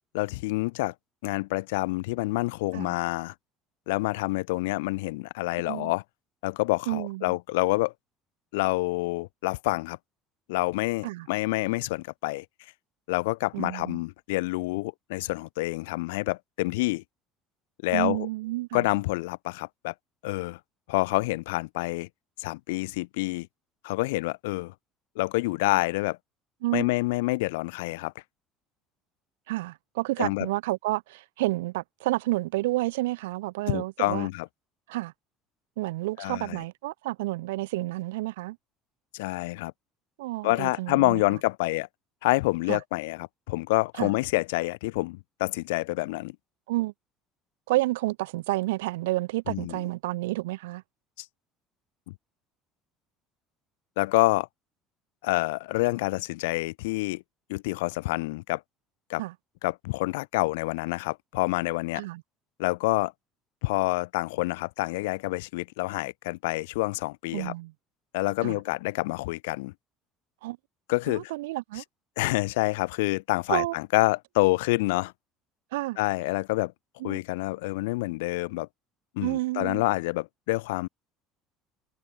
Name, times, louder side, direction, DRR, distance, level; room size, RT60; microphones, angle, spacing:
voice 1, 0.1-0.9 1.2-3.3 3.9-6.0 6.4-7.9 8.5-10.0 10.5-12.4 13.1-17.0 17.8-18.3 18.7-19.9 20.2-20.6 20.9-22.1 22.4-23.5 23.8-24.7 25.1-26.2 26.7-28.1 30.2-30.5 33.7-34.5 36.2-36.6 39.1-39.7 40.4-41.9 42.2-46.4 49.5-49.8 54.0-54.5 55.2-57.2 57.5-58.6 59.1-59.2 59.6-62.0 62.6-63.1 63.6-67.5 68.1-69.7 70.9-71.3 71.8-71.9 72.2-75.1 76.0-76.7 77.0-78.7 79.1-80.9, left 22 dB, 65° left, 1.1 m, -27 dB
voice 2, 6.9-7.4 11.0-11.3 13.5-14.0 17.9-18.9 26.6-26.9 29.5-34.3 34.9-35.1 35.8-38.6 40.2-41.2 42.7-42.8 44.0-44.1 46.7-46.9 47.7-50.8 59.2-59.3 62.0-62.2 67.3-67.7 68.4-68.6 70.4-70.6 71.1-71.8 73.5-73.7 75.7-76.0 77.0-77.2 79.2-79.8, right 19 dB, 65° right, 0.7 m, -30 dB
figure-of-eight pair, 60°, 0 cm